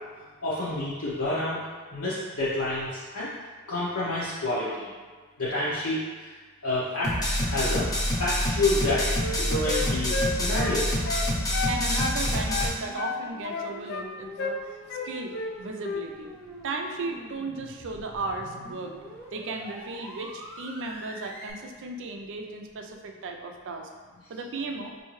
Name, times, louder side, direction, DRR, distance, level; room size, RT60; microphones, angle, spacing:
voice 1, 0.4-1.6 1.9-3.3 3.7-4.9 5.4-6.3 6.6-7.9 8.2-11.0, left 1 dB, 70° left, -10 dB, 0.8 m, -29 dB
sound 1, 7.0-12.7, equal, 15° left, 0.7 m, -27 dB
Wind instrument woodwind instrument, 8.7-12.2 12.5-14.1 14.4-14.6 14.9-15.5 15.8-16.1, left 4 dB, 50° left, 0.3 m, -32 dB
sound 2, 11.5-21.5, equal, 10° right, 0.8 m, -46 dB
voice 2, 11.7-14.8 15.0-16.3 16.6-23.9 24.3-24.9, right 3 dB, 60° right, 4 dB, 0.4 m, -35 dB
4.4 x 2.7 x 3.1 m, 1.4 s
head